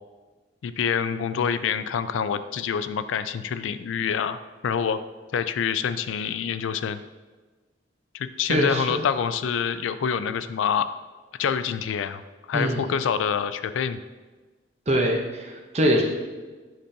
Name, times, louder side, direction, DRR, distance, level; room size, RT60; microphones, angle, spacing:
voice 1, 0.6-5.0 5.3-7.0 8.1-10.9 11.4-12.2 12.5-14.0, left 7 dB, 90° left, 12 dB, 0.3 m, -26 dB
voice 2, 8.5-9.0 12.5-12.9 14.9-16.0, equal, 35° right, 1 dB, 0.8 m, -23 dB
7.7 x 5.2 x 2.7 m, 1.3 s
head